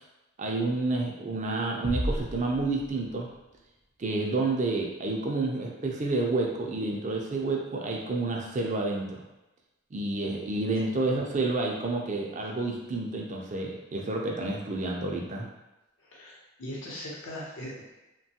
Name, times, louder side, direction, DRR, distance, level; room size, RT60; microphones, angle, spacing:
voice 1, 0.4-3.3 4.0-9.2 9.9-15.5, right 2 dB, 35° right, 0 dB, 0.4 m, -29 dB
sound 1, 1.8-3.6, equal, 75° right, 0.7 m, -33 dB
voice 2, 16.0-17.9, equal, 75° left, -6 dB, 0.7 m, -40 dB
3.1 x 2.2 x 2.7 m, 1.0 s
head